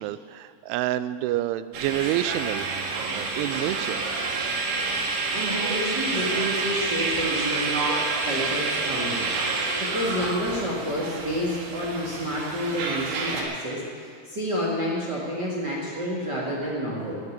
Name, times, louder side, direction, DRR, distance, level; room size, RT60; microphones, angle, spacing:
voice 1, 0.0-2.7 3.1-4.0, right 13 dB, 90° right, 14 dB, 3.0 m, -28 dB
sound 1, 1.7-13.4, right 3 dB, 65° right, 3.5 m, -28 dB
voice 2, 5.0-7.8 8.2-9.3 9.8-17.2, equal, 45° right, -4 dB, 1.4 m, -29 dB
13.0 x 9.6 x 9.5 m, 2.1 s
omnidirectional pair, 5.4 m